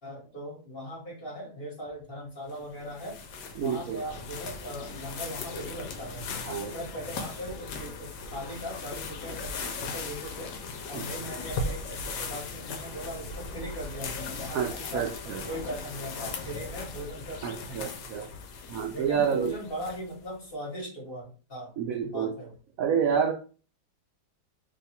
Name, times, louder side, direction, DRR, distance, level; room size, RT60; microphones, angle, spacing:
voice 1, 0.0-3.2 3.6-10.5 10.9-15.1 15.5-17.9 18.9-22.5, equal, 35° left, -3 dB, 1.2 m, -39 dB
sound 1, 2.5-20.3, left 4 dB, 75° left, 1.2 m, -38 dB
voice 2, 3.6-4.0 6.4-6.7 14.5-15.4 17.4-18.3 18.7-19.5 21.8-22.3 22.8-23.3, right 7 dB, 85° right, 2 dB, 0.7 m, -28 dB
3.1 x 2.3 x 4.1 m, 0.37 s
omnidirectional pair, 2.0 m